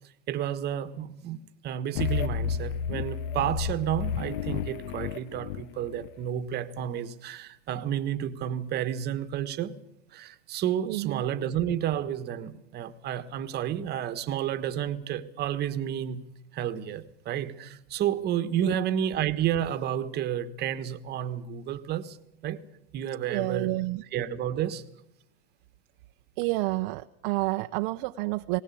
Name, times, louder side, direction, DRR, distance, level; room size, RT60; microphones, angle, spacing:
voice 1, 0.3-9.7 10.1-16.2 16.5-22.2 22.4-22.6 22.9-23.7 24.1-24.8, right 10 dB, 30° right, 1.4 m, -31 dB
sound 1, 2.0-6.1, left 8 dB, 60° left, 0.8 m, -31 dB
voice 2, 10.9-11.2 18.6-18.7 23.3-24.0 26.4-28.6, right 21 dB, 50° right, 0.8 m, -29 dB
20.0 x 19.0 x 8.5 m
supercardioid pair, 130°, 31 cm